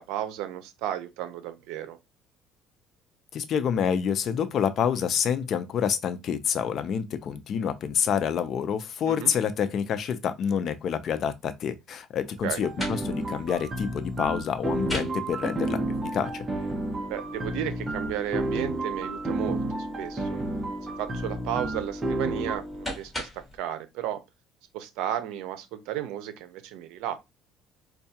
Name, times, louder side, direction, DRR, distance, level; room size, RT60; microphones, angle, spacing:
voice 1, 0.0-2.0 9.1-9.3 12.4-12.6 17.1-20.4 21.0-24.2 24.7-27.2, right 11 dB, 85° right, 0.6 m, -34 dB
voice 2, 3.3-15.8 16.1-16.5, left 7 dB, 45° left, 0.4 m, -27 dB
sound 1, 12.4-23.6, left 1 dB, 10° left, 1.3 m, -39 dB
sound 2, 12.6-22.6, right 2 dB, 20° right, 0.7 m, -31 dB
4.5 x 2.3 x 2.7 m
cardioid pair, 140°, 0 cm